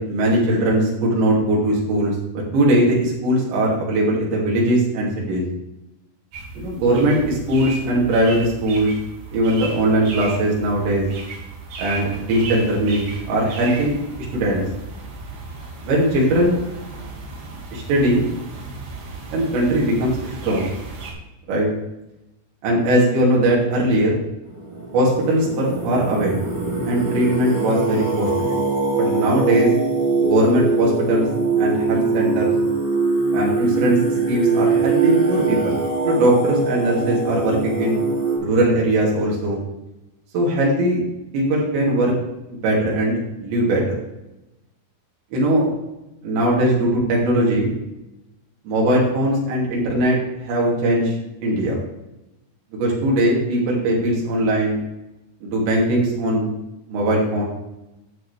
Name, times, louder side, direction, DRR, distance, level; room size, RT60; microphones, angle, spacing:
voice 1, 0.0-5.4 6.5-8.9 9.3-11.1 11.8-14.0 14.3-14.6 15.8-16.6 17.7-18.2 19.3-20.7 21.5-21.7 22.6-24.2 24.9-26.4 26.9-28.6 28.9-29.7 30.2-31.3 31.6-32.5 33.3-34.0 34.3-38.0 38.4-39.6 40.3-41.0 41.3-42.1 42.5-43.8 45.3-45.7 46.2-47.7 48.6-51.2 51.4-51.8 52.7-54.8 55.4-56.5 56.9-57.4, right 1 dB, 80° right, -4 dB, 4.9 m, -20 dB
sound 1, 6.3-21.1, right 3 dB, 65° right, 4.0 m, -35 dB
Singing, 24.5-38.4, right 3 dB, 50° right, 4.7 m, -22 dB
12.5 x 8.9 x 3.4 m, 0.95 s
omnidirectional pair, 5.0 m